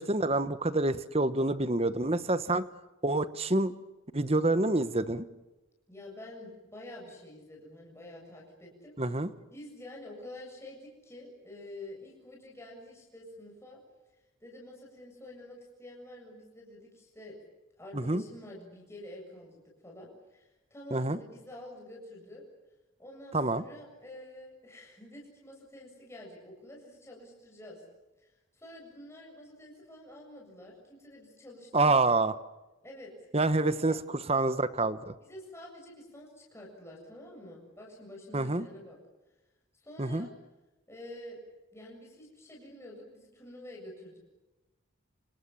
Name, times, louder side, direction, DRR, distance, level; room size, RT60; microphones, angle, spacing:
voice 1, 0.0-2.7 3.0-3.7 4.1-5.3 9.0-9.3 17.9-18.2 20.9-21.2 23.3-23.6 31.7-32.3 33.3-35.1 38.3-38.6 40.0-40.3, right 2 dB, 30° right, 13 dB, 1.2 m, -27 dB
voice 2, 5.9-9.1 9.5-13.8 14.4-17.3 17.8-22.4 23.0-27.8 28.2-32.2 32.8-33.3 33.7-34.0 35.2-39.0 39.8-40.3 40.9-41.4 41.7-44.2, left 1 dB, 10° left, -2 dB, 7.5 m, -48 dB
28.5 x 28.0 x 7.2 m, 1.1 s
head